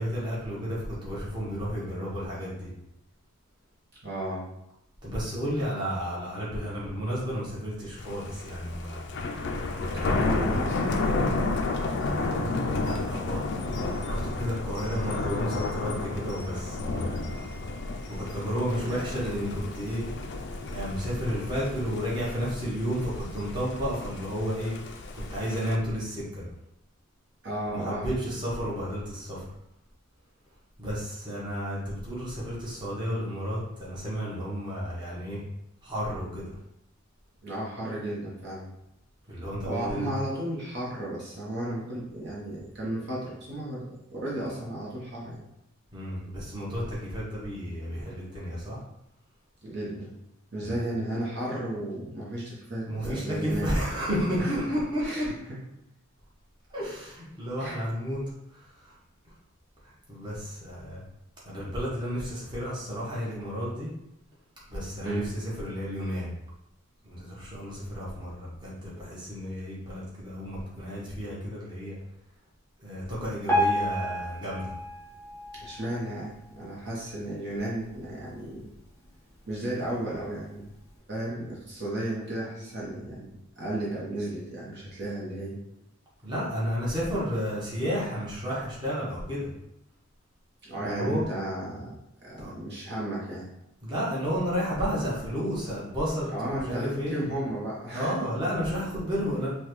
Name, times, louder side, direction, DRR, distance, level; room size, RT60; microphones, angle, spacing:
voice 1, 0.0-2.7 5.0-9.0 9.7-10.4 12.2-13.4 14.0-17.4 18.1-20.0 20.7-24.7 25.1-26.4 27.7-29.5 30.8-35.4 35.8-36.5 39.3-40.1 45.9-48.8 50.6-50.8 52.9-55.3 56.7-58.2 58.5-58.9 59.2-59.3 59.8-61.0 61.4-63.9 64.7-66.3 67.0-72.0 72.8-74.7 86.2-89.5 90.8-91.2 92.4-92.5 93.8-97.2 97.9-99.5, equal, 20° right, -7 dB, 1.1 m, -32 dB
voice 2, 4.0-4.4 9.9-10.8 15.0-15.1 18.9-19.1 27.4-28.1 37.4-38.7 39.6-45.4 49.6-50.1 50.5-53.7 54.4-54.5 55.0-55.3 57.6-57.7 65.0-65.3 75.6-78.7 79.5-80.7 81.1-85.6 90.6-93.5 96.3-98.1, right 1 dB, 50° right, -5 dB, 1.0 m, -34 dB
Thunder, 8.0-25.8, left 3 dB, 50° left, 0.4 m, -32 dB
Piano, 73.5-76.6 77.1-77.3 77.6-77.7 78.4-78.5 79.0-79.1, equal, 10° left, 0.8 m, -30 dB
5.4 x 2.3 x 3.1 m, 0.82 s
head